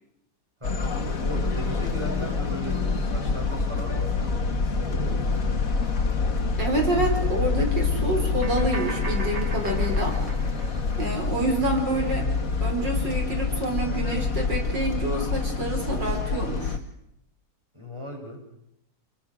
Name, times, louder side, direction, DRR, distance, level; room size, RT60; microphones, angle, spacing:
sound 1, 0.6-16.8, left 4 dB, 50° left, 2.3 m, -26 dB
voice 1, 1.2-5.6 17.7-18.4, equal, 15° right, 0 dB, 7.5 m, -38 dB
voice 2, 6.6-10.2 11.0-12.3 12.6-16.8, right 2 dB, 75° right, 2 dB, 5.6 m, -27 dB
sound 2, 8.4-11.3, right 3 dB, 50° right, 6.0 m, -38 dB
30.0 x 22.5 x 6.5 m, 0.79 s
omnidirectional pair, 2.0 m